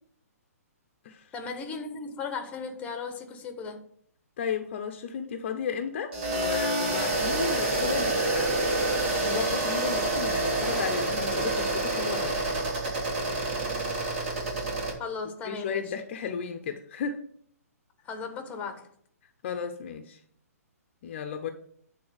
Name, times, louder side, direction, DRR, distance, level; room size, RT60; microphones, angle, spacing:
voice 1, 1.3-3.8 15.0-15.8 18.0-18.9, left 5 dB, 15° left, 1.4 m, -36 dB
voice 2, 4.4-8.5 9.2-12.4 15.4-17.2 19.4-20.2 21.0-21.5, left 6 dB, 45° left, 0.9 m, -34 dB
sound 1, 6.1-14.9, right 2 dB, 45° right, 3.8 m, -28 dB
9.6 x 4.1 x 6.3 m
figure-of-eight pair, 125°, 9 cm